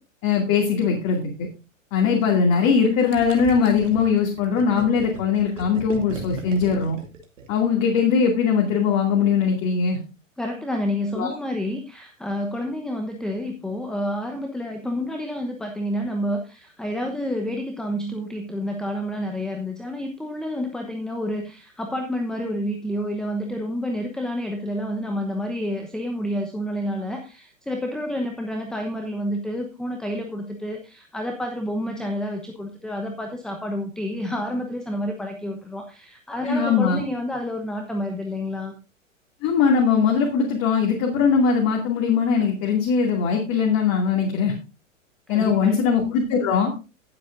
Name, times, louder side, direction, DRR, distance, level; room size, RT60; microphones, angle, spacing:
voice 1, 0.2-1.5 1.9-7.0 7.5-10.0 11.2-11.3 36.4-37.0 39.4-44.5 45.3-46.7, left 6 dB, 40° left, 0 dB, 2.5 m, -20 dB
Gurgling, 3.1-7.8, right 4 dB, 70° right, 2.5 m, -37 dB
voice 2, 10.4-38.7 45.3-45.8, equal, ahead, 3 dB, 0.9 m, -29 dB
18.0 x 7.7 x 2.6 m, 0.29 s
hypercardioid pair, 105°, 40 cm